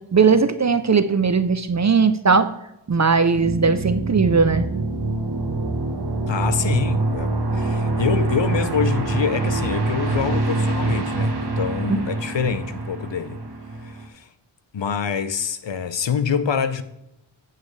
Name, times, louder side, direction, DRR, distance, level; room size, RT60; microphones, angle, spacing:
voice 1, 0.1-2.5 2.9-4.7, right 5 dB, 35° right, 0.5 m, -18 dB
sound 1, 3.3-14.1, right 2 dB, 55° right, 1.2 m, -25 dB
voice 2, 6.3-13.4 14.1-14.2 14.7-16.8, left 7 dB, 65° left, 0.7 m, -26 dB
8.3 x 7.3 x 3.2 m
wide cardioid pair, 55°, 48 cm